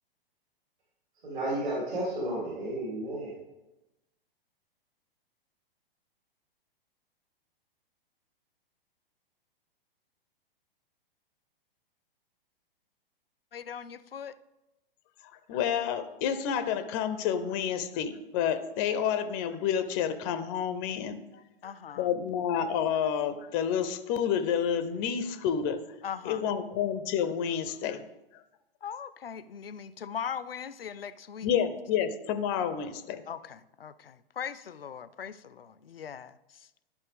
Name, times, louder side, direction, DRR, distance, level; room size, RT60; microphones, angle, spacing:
voice 1, 1.2-3.3, right 1 dB, 60° right, -5 dB, 2.9 m, -32 dB
voice 2, 13.5-14.4 21.6-22.1 26.0-26.6 28.8-31.5 33.3-36.7, left 7 dB, 75° left, 16 dB, 0.5 m, -40 dB
voice 3, 15.5-21.4 22.0-25.8 26.2-28.0 28.3-28.4 31.4-33.2, left 8 dB, 20° left, 10 dB, 0.4 m, -29 dB
11.5 x 5.3 x 3.5 m, 0.97 s
figure-of-eight pair, 110°, 29 cm